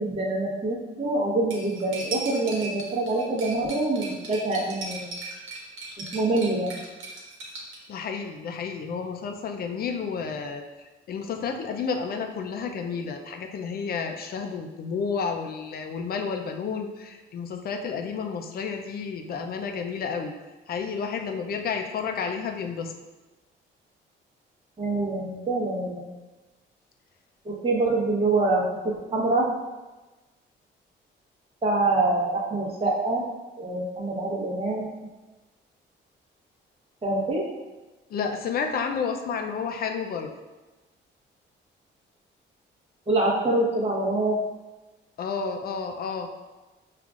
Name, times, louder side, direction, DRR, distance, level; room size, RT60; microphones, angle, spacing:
voice 1, 0.0-5.1 6.0-6.8 24.8-26.1 27.4-28.7 29.1-29.5 31.6-33.2 33.6-34.9 37.0-37.4 43.1-44.4, right 2 dB, 30° right, -4 dB, 1.0 m, -25 dB
Cutlery silverware, 1.5-7.8, right 3 dB, 80° right, 1.0 m, -38 dB
voice 2, 7.9-20.3 20.7-22.9 38.1-40.3 45.2-46.3, left 5 dB, 50° left, 4 dB, 0.5 m, -31 dB
5.5 x 2.5 x 2.4 m, 1.2 s
cardioid pair, 90°, 20 cm